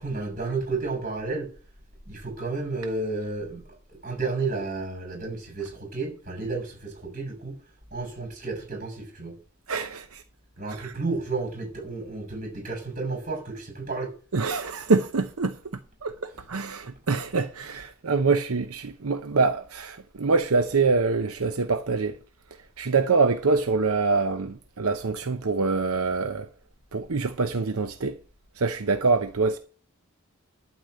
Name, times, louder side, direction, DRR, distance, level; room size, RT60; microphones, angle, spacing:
voice 1, 0.0-1.5 2.1-7.5 7.9-9.4 10.6-14.1, right 3 dB, 35° right, 6.6 m, -32 dB
voice 2, 9.7-10.2 10.7-10.9 14.3-15.6 16.0-22.1 22.8-26.5 26.9-28.2 28.6-29.6, right 4 dB, 85° right, 0.8 m, -25 dB
12.0 x 4.9 x 7.9 m
head